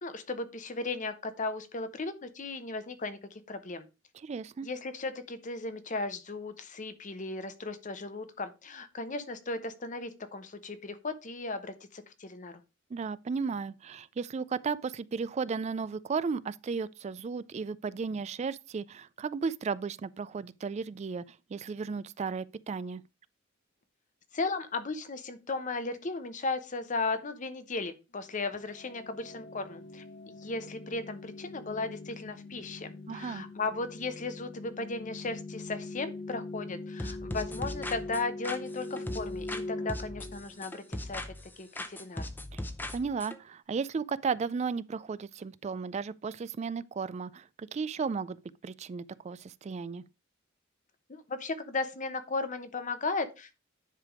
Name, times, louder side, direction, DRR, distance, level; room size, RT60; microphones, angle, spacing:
voice 1, 0.0-3.9 4.6-12.6 24.3-30.0 30.4-42.3 51.1-53.6, left 3 dB, 40° left, 0.8 m, -36 dB
voice 2, 4.1-4.7 12.9-23.0 33.1-33.5 42.5-42.6 42.9-50.0, right 5 dB, 35° right, 0.3 m, -34 dB
sound 1, 28.4-41.1, left 2 dB, 65° left, 1.5 m, -42 dB
sound 2, 37.0-39.6 39.9-41.5 41.8-43.4, left 1 dB, 10° left, 0.6 m, -39 dB
10.0 x 3.4 x 4.7 m
head